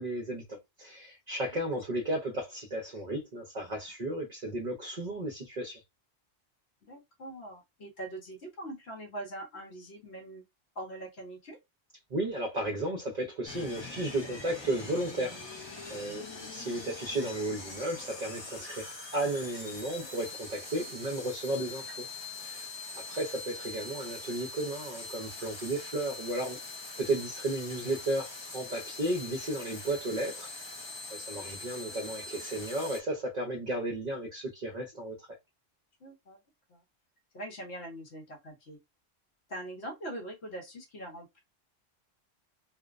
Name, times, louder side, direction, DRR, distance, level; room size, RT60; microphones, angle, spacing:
voice 1, 0.0-5.8 12.1-22.0 22.4-22.7 22.9-26.6 27.0-30.5 31.1-35.3, right 1 dB, 45° right, 0.6 m, -34 dB
voice 2, 6.8-10.4 10.7-11.6 15.9-16.2 36.0-36.4 36.7-36.8 37.3-38.8 39.5-41.4, right 1 dB, 65° left, 1.0 m, -42 dB
sound 1, 13.5-33.0, left 3 dB, 45° left, 0.3 m, -43 dB
2.5 x 2.1 x 2.3 m
omnidirectional pair, 1.2 m